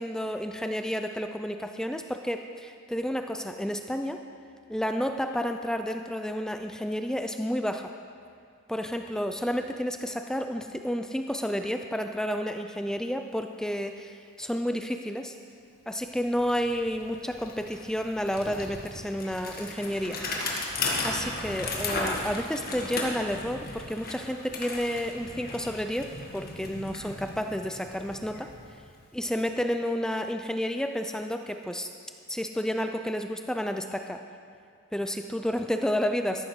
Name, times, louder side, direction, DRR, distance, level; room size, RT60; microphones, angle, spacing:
voice 1, 0.0-4.2 4.7-7.9 8.7-15.4 15.9-20.2 21.0-28.5 29.1-31.9 32.3-34.2 34.9-36.4, equal, 5° left, 6 dB, 0.4 m, -31 dB
Bicycle, 16.0-16.1 16.4-29.3, left 2 dB, 40° left, 1.7 m, -36 dB
14.0 x 11.5 x 4.9 m, 2.2 s
head